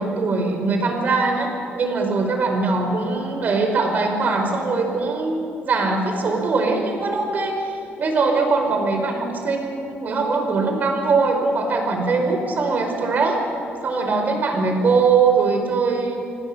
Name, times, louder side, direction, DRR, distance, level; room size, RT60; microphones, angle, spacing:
voice 1, 0.0-1.5 1.7-13.4 13.8-16.2, right 4 dB, 40° right, 3 dB, 5.1 m, -21 dB
27.0 x 25.0 x 7.1 m, 2.6 s
cardioid pair, 165°, 4 cm